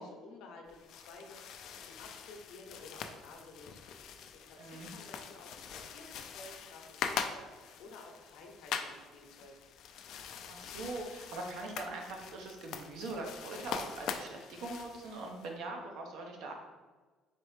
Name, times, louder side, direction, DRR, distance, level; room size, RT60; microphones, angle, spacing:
voice 1, 0.0-1.4 1.7-3.8 4.3-7.4 7.8-9.5, left 3 dB, 80° left, 1 dB, 0.8 m, -53 dB
sound 1, 0.7-15.5, left 7 dB, 65° left, 0.3 m, -43 dB
voice 2, 4.6-4.9 10.5-16.5, right 2 dB, 75° right, 2 dB, 0.8 m, -42 dB
4.3 x 3.2 x 3.1 m, 1.4 s
cardioid pair, 120°, 0 cm